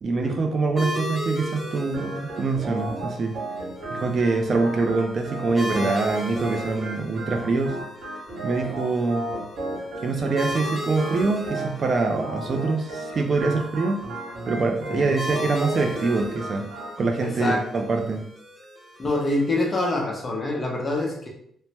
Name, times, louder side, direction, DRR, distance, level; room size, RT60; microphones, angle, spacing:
voice 1, 0.0-3.4 3.9-7.8 8.4-9.3 10.0-14.0 14.5-16.7 17.0-18.2, right 3 dB, 40° right, 4 dB, 0.3 m, -24 dB
sound 1, 0.8-19.9, equal, 5° left, 1.0 m, -37 dB
Organ, 1.9-16.9, right 1 dB, 75° right, 1.1 m, -34 dB
voice 2, 17.2-17.6 19.0-21.3, left 2 dB, 30° left, -1 dB, 0.7 m, -25 dB
3.1 x 2.1 x 2.9 m, 0.67 s
cardioid pair, 135°, 0 cm